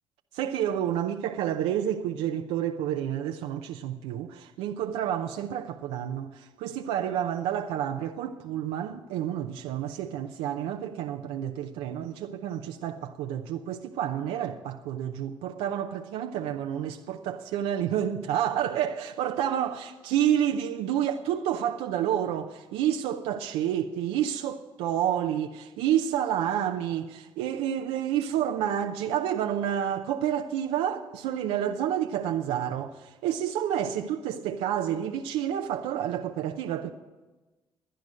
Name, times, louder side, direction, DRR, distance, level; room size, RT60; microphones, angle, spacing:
voice 1, 0.3-36.9, right 10 dB, 85° right, 0.7 m, -29 dB
17.0 x 10.5 x 6.3 m
supercardioid pair, 60°, 10 cm